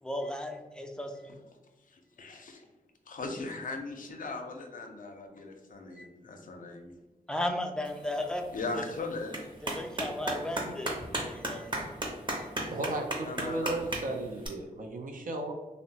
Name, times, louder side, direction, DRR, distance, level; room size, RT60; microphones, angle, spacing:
voice 1, 0.0-1.3 6.0-6.1 7.3-8.4 8.8-8.9 9.6-11.9 12.3-12.5, left 1 dB, 5° left, 3 dB, 0.4 m, -35 dB
voice 2, 1.9-2.6 3.1-6.9 8.5-9.5 13.2-14.1, left 3 dB, 60° left, 4 dB, 0.5 m, -39 dB
Clapping, 7.8-14.5, right 1 dB, 30° right, 0.7 m, -37 dB
voice 3, 12.7-15.5, right 2 dB, 65° right, 2 dB, 0.4 m, -35 dB
2.9 x 2.0 x 2.7 m, 1.1 s
cardioid pair, 60°, 15 cm